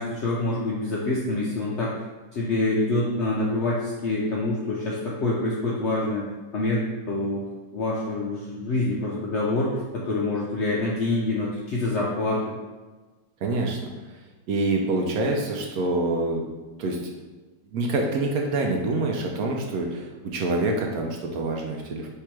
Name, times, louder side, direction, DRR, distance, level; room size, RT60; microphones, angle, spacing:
voice 1, 0.0-2.0 2.3-6.2 6.5-7.5 7.7-12.5, left 2 dB, 65° left, -4 dB, 0.7 m, -26 dB
voice 2, 13.4-13.9 14.5-16.4 16.8-17.0 17.7-22.1, right 2 dB, 70° right, 1 dB, 1.0 m, -26 dB
3.4 x 2.9 x 4.5 m, 1.3 s
omnidirectional pair, 1.8 m